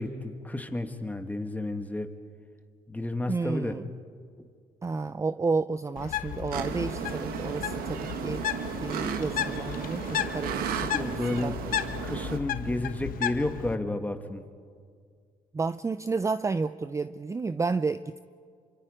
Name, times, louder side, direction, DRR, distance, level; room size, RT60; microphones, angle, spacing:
voice 1, 0.0-2.1 2.9-3.8 10.9-11.6 12.0-14.4, left 2 dB, 10° left, 6 dB, 1.9 m, -31 dB
voice 2, 3.3-3.9 4.8-8.5 8.8-11.1 11.4-11.6 15.5-18.2, right 4 dB, 20° right, 13 dB, 0.5 m, -31 dB
Bird, 6.0-13.8, left 10 dB, 75° left, 1.0 m, -34 dB
sound 1, 6.5-12.4, right 7 dB, 85° right, 1.4 m, -34 dB
27.0 x 25.0 x 5.1 m, 2.1 s
cardioid pair, 90°, 15 cm